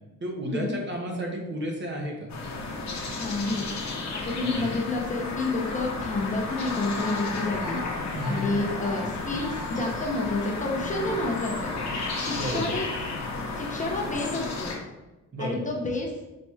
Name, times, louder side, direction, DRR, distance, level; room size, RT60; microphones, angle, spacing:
voice 1, 0.2-2.3 4.4-4.7 8.1-8.6 12.3-12.8 15.3-15.7, equal, 35° right, 0 dB, 0.7 m, -32 dB
sound 1, 2.3-14.8, left 3 dB, 55° left, 0.8 m, -33 dB
voice 2, 3.2-3.7 4.1-7.8 8.2-11.7 12.2-12.9 13.6-14.7 15.4-16.1, left 2 dB, 25° left, -1 dB, 0.6 m, -29 dB
sound 2, 7.0-7.2 7.6-7.8 8.2-8.4 8.8-9.0 9.4-9.6, equal, 90° right, 1.3 m, -41 dB
4.2 x 2.9 x 2.3 m, 1.1 s
cardioid pair, 105°, 33 cm